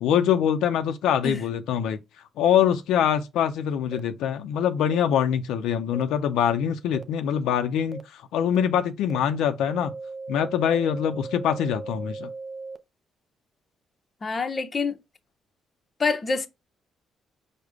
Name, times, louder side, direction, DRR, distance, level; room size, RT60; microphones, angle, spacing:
voice 1, 0.0-2.0 2.4-9.9 10.3-12.3, left 9 dB, 85° left, 0.5 m, -24 dB
sound 1, 3.9-4.0 4.9-5.0 5.9-6.0 6.9-7.0 7.9-8.0 8.5-8.6 9.1-9.2 9.6-12.8, right 3 dB, 20° right, 0.5 m, -37 dB
voice 2, 14.2-15.0 16.0-16.5, left 4 dB, 35° left, 0.6 m, -26 dB
5.0 x 2.1 x 4.7 m
cardioid pair, 90°, 0 cm